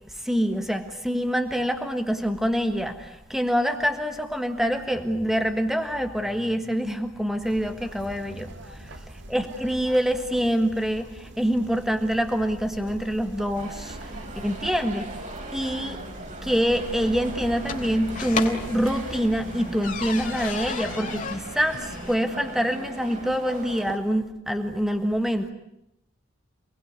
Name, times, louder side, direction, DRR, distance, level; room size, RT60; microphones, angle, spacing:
voice 1, 0.2-8.9 9.3-15.1 15.5-16.0 16.4-25.5, equal, ahead, 6 dB, 1.5 m, -26 dB
sound 1, 7.4-20.8, right 1 dB, 60° right, 2.3 m, -43 dB
sound 2, 13.5-24.0, right 2 dB, 40° right, 4.2 m, -39 dB
sound 3, 16.6-22.2, left 4 dB, 40° left, 3.3 m, -35 dB
28.5 x 20.0 x 9.6 m, 0.83 s
head